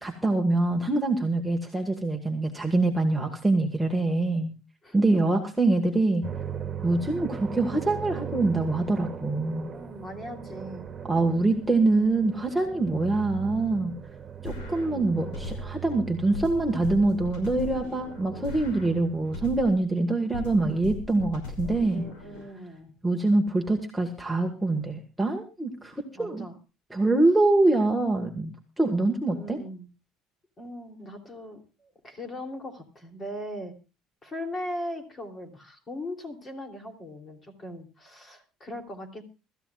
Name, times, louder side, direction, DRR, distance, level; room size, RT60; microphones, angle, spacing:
voice 1, 0.0-4.5 4.9-6.2 6.8-9.7 11.1-13.9 14.4-22.0 23.0-26.5 26.9-28.5 28.8-29.6, right 2 dB, 5° right, 1 dB, 1.6 m, -24 dB
sound 1, 6.2-19.5, right 8 dB, 25° right, 2.2 m, -39 dB
voice 2, 9.7-10.9 14.8-15.6 21.9-22.9 26.1-26.6 29.3-29.9 30.6-33.7 34.2-39.2, left 1 dB, 25° left, 4 dB, 3.1 m, -39 dB
sound 2, 14.4-15.9 16.3-19.9 20.3-22.4, left 3 dB, 80° left, 5.6 m, -39 dB
24.5 x 14.0 x 2.4 m, 0.30 s
cardioid pair, 135°, 0 cm